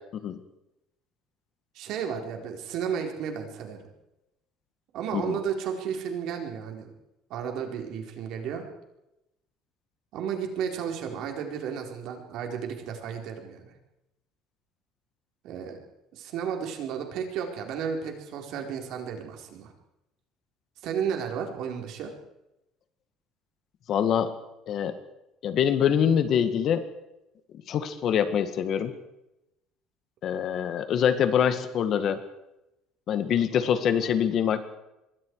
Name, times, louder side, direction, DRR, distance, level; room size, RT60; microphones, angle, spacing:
voice 1, 1.7-3.8 4.9-6.9 7.3-8.7 10.1-13.7 15.4-15.8 16.1-19.7 20.8-22.1, right 7 dB, 60° right, 3 dB, 4.3 m, -33 dB
voice 2, 23.9-24.4 24.7-25.0 25.4-26.9 27.7-28.9 30.2-32.2 33.1-34.6, left 8 dB, 45° left, 10 dB, 1.8 m, -24 dB
26.0 x 22.5 x 4.9 m, 0.91 s
cardioid pair, 160°, 0 cm